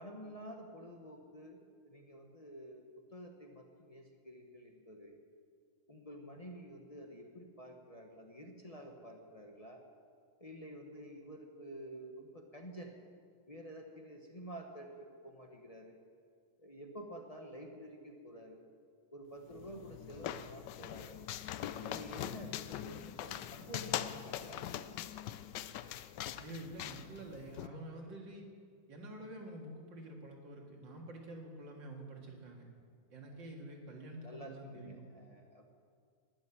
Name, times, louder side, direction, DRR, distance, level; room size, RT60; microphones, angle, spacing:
voice 1, 0.0-2.8 3.1-5.2 5.9-9.8 10.4-12.9 13.5-16.0 16.6-18.6 19.1-21.2 21.8-24.7 34.2-35.7, equal, 25° left, 2 dB, 0.8 m, -50 dB
sound 1, 19.5-27.7, left 11 dB, 75° left, 1.0 m, -42 dB
voice 2, 26.4-28.5 28.9-32.6 33.1-35.0, right 1 dB, 60° right, 0 dB, 2.5 m, -48 dB
11.5 x 8.8 x 9.8 m, 2.2 s
omnidirectional pair, 2.3 m